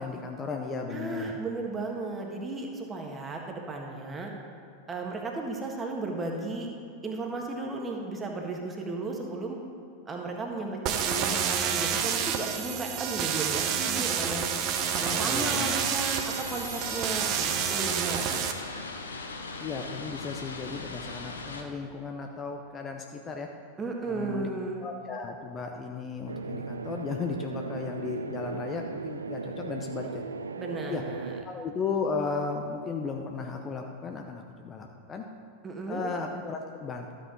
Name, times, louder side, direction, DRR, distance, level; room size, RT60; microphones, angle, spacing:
voice 1, 0.0-1.3 15.2-15.8 19.6-23.5 24.1-24.5 24.8-30.2 30.9-31.0 31.4-35.2 35.9-37.1, left 4 dB, 25° left, 3 dB, 0.7 m, -35 dB
voice 2, 0.8-4.3 4.9-6.7 7.0-9.6 10.1-14.4 14.9-18.6 23.8-24.8 30.6-31.4 35.6-36.1, right 3 dB, 15° right, 1 dB, 1.6 m, -35 dB
sound 1, 10.9-18.5, right 8 dB, 40° right, 0.8 m, -29 dB
sound 2, 14.7-21.6, left 3 dB, 75° left, 0.9 m, -40 dB
sound 3, 26.3-31.4, right 4 dB, 75° right, 0.3 m, -37 dB
13.0 x 8.1 x 3.9 m, 2.5 s
figure-of-eight pair, 90°, 0 cm